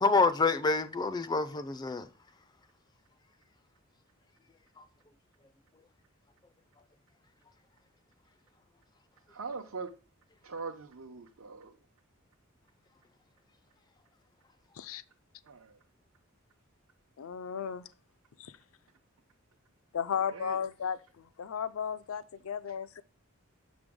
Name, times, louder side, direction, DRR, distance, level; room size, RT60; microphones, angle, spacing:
voice 1, 0.0-2.1 4.8-4.9, left 3 dB, 20° left, 0.4 m, -27 dB
voice 2, 9.3-9.9 10.4-11.8 15.4-15.8 17.6-17.7 20.3-20.6, right 4 dB, 80° right, 0.7 m, -42 dB
voice 3, 17.2-17.9 18.4-18.5 19.9-23.0, left 7 dB, 75° left, 0.5 m, -35 dB
6.8 x 5.2 x 3.6 m
head